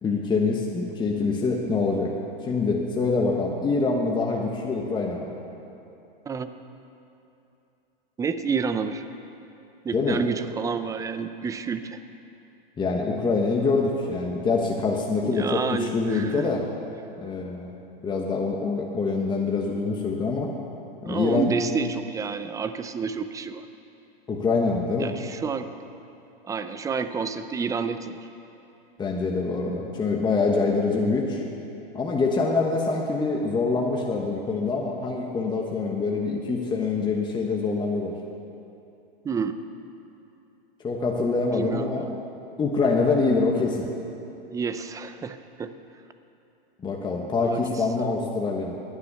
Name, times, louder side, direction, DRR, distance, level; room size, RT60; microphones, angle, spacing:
voice 1, 0.0-2.1 2.4-5.3 9.9-10.2 12.8-16.6 17.2-17.7 18.0-20.5 21.0-21.5 24.3-25.1 29.0-31.4 31.9-38.1 40.8-42.2 42.6-43.9 46.8-48.8, left 4 dB, 15° left, 0 dB, 1.2 m, -25 dB
voice 2, 8.2-9.0 9.8-12.0 15.2-16.5 21.0-23.7 25.0-25.8 26.4-28.2 39.2-39.6 41.5-42.0 44.5-45.7 47.4-48.2, right 5 dB, 10° right, 10 dB, 0.5 m, -29 dB
15.0 x 10.0 x 6.8 m, 2.8 s
hypercardioid pair, 125°, 29 cm